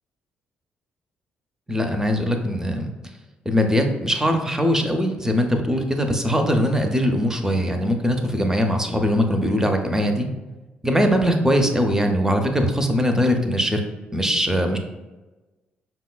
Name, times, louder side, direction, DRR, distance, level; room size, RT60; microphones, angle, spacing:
voice 1, 1.7-2.9 3.5-10.3 10.8-13.8 14.1-14.8, equal, 10° right, 5 dB, 0.5 m, -21 dB
5.2 x 2.2 x 2.3 m, 1.1 s
hypercardioid pair, 45°, 5 cm